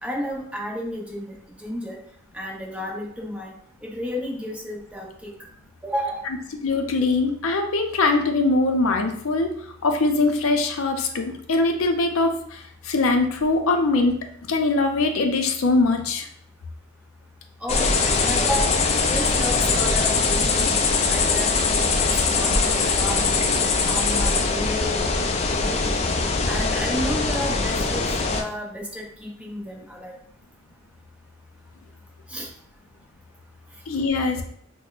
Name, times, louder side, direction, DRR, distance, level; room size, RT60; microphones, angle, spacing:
voice 1, 0.0-2.0 2.3-3.5 3.8-5.3 5.8-6.3 17.6-18.8 19.1-23.4 23.9-25.1 25.5-25.9 26.4-30.1 32.3-32.5, equal, 5° right, -2 dB, 0.7 m, -32 dB
voice 2, 6.6-14.2 14.5-16.3 33.9-34.4, left 3 dB, 90° left, 5 dB, 0.5 m, -22 dB
sound 1, 17.7-28.4, left 4 dB, 30° left, 0.3 m, -22 dB
5.9 x 2.1 x 2.4 m, 0.66 s
head